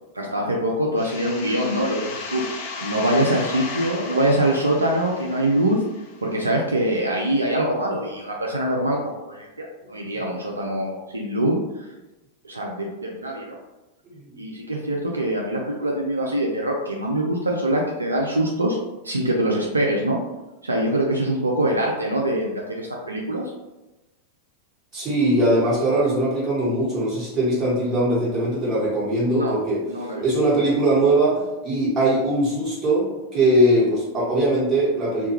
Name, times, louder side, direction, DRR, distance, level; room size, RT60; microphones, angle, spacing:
voice 1, 0.1-2.4 2.8-5.8 6.2-11.9 12.4-13.6 14.4-18.8 19.0-20.2 20.6-23.5 29.3-29.5 29.9-30.2, right 1 dB, 80° right, -1 dB, 0.3 m, -24 dB
sound 1, 1.0-6.5, left 4 dB, 45° left, 0.4 m, -35 dB
voice 2, 14.0-14.6 24.9-29.8 30.2-33.1 33.3-35.3, right 1 dB, 25° right, -8 dB, 1.2 m, -21 dB
2.2 x 2.2 x 2.9 m, 1.0 s
figure-of-eight pair, 90°, 0 cm